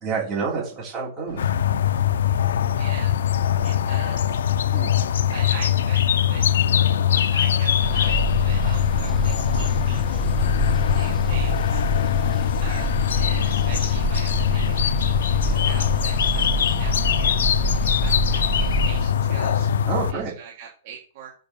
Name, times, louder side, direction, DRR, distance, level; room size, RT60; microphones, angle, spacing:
voice 1, 0.0-1.4 4.7-4.9 19.9-20.3, right 5 dB, 15° right, -4 dB, 3.2 m, -28 dB
sound 1, 1.3-20.3, left 7 dB, 45° left, 1.0 m, -38 dB
sound 2, 1.4-20.1, left 9 dB, 85° left, 0.6 m, -22 dB
voice 2, 2.8-3.1 3.6-4.4 5.3-6.5 7.1-11.8 12.6-12.9 13.1-17.5 17.9-19.7 20.1-21.3, right 7 dB, 35° right, -1 dB, 1.6 m, -42 dB
sound 3, 7.8-19.0, right 2 dB, ahead, 0.6 m, -27 dB
7.0 x 5.2 x 7.0 m, 0.42 s
hypercardioid pair, 175°, 0 cm